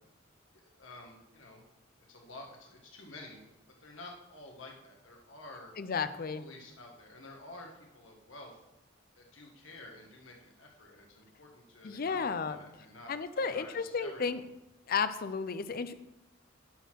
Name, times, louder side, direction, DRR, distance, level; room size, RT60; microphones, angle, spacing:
voice 1, 0.5-1.6 2.1-3.4 3.8-5.7 6.3-8.6 9.1-14.4, left 2 dB, 80° left, 0 dB, 1.6 m, -50 dB
voice 2, 5.8-6.4 11.8-12.6 13.1-14.4 14.9-15.9, left 5 dB, 50° left, 12 dB, 0.5 m, -33 dB
10.5 x 4.3 x 6.2 m, 0.91 s
head